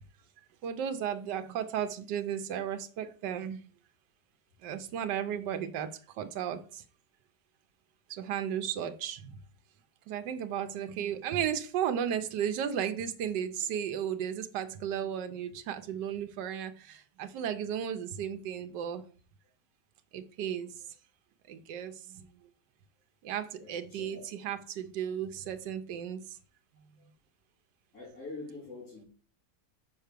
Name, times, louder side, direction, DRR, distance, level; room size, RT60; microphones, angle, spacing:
voice 1, 0.6-3.6 4.6-5.9 6.2-6.8 8.1-9.4 10.1-19.0 20.1-20.7 21.5-22.3 23.2-26.4, right 9 dB, 85° right, 8 dB, 1.4 m, -34 dB
voice 2, 23.6-24.4 27.0-27.1 27.9-29.1, left 3 dB, 55° left, -7 dB, 3.5 m, -45 dB
6.4 x 4.5 x 6.6 m, 0.40 s
omnidirectional pair, 1.8 m